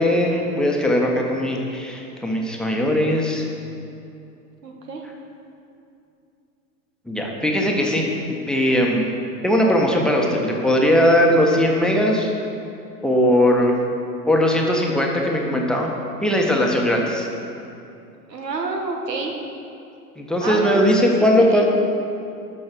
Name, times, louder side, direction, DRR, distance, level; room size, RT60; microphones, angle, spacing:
voice 1, 0.0-3.5 7.1-9.0 9.4-12.3 13.0-13.8 14.3-15.9 16.2-17.3 20.2-21.7, equal, ahead, -1 dB, 1.2 m, -19 dB
voice 2, 4.6-5.0 18.3-19.3 20.4-20.8 21.4-21.7, right 3 dB, 80° right, 1 dB, 1.5 m, -28 dB
12.0 x 5.4 x 6.1 m, 2.7 s
hypercardioid pair, 100°, 48 cm